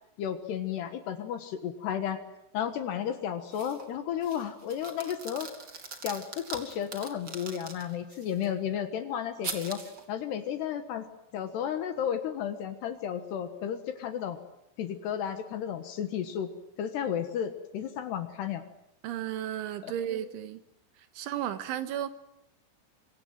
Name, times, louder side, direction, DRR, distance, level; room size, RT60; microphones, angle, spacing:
voice 1, 0.2-2.2 2.5-5.5 6.0-9.8 10.1-11.1 11.3-14.4 14.8-16.5 16.8-18.7 19.8-19.9, left 9 dB, 65° left, 9 dB, 3.1 m, -33 dB
sound 1, 3.5-3.9 4.2-8.5 9.4-10.0, right 4 dB, 30° right, 2.4 m, -42 dB
voice 2, 19.0-20.6 21.2-22.1, right 11 dB, 75° right, 11 dB, 3.5 m, -33 dB
25.5 x 24.5 x 9.1 m, 0.83 s
omnidirectional pair, 6.0 m